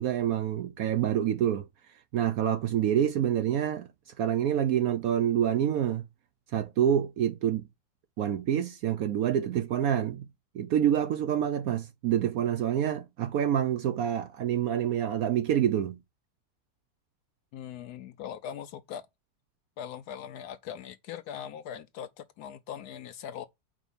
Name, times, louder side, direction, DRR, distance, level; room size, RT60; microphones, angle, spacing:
voice 1, 0.0-1.7 2.1-3.9 4.2-6.0 6.5-7.6 8.2-10.3 10.5-16.0, right 10 dB, 70° right, 0.9 m, -27 dB
voice 2, 17.5-19.1 19.8-23.4, left 9 dB, 70° left, 1.0 m, -40 dB
5.0 x 4.6 x 5.5 m
omnidirectional pair, 1.9 m